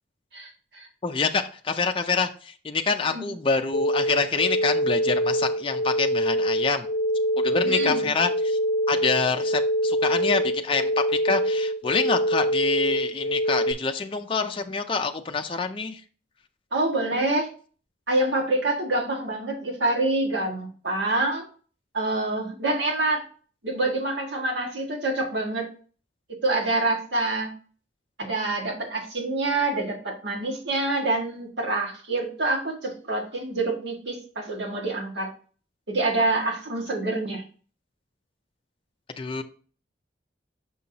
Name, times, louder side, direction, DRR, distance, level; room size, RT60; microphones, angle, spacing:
voice 1, 0.3-0.9 3.1-3.3 7.6-8.1 16.7-17.5 18.1-21.4 21.9-23.2 23.6-25.7 26.4-27.5 28.2-35.3 35.9-37.4, right 2 dB, 65° right, -1 dB, 1.8 m, -26 dB
voice 2, 1.0-6.9 7.4-8.6 8.9-16.0 39.2-39.4, left 4 dB, 30° left, 5 dB, 0.4 m, -26 dB
sound 1, 3.7-13.7, equal, 85° left, 0.6 m, -25 dB
6.2 x 5.5 x 2.8 m, 0.40 s
head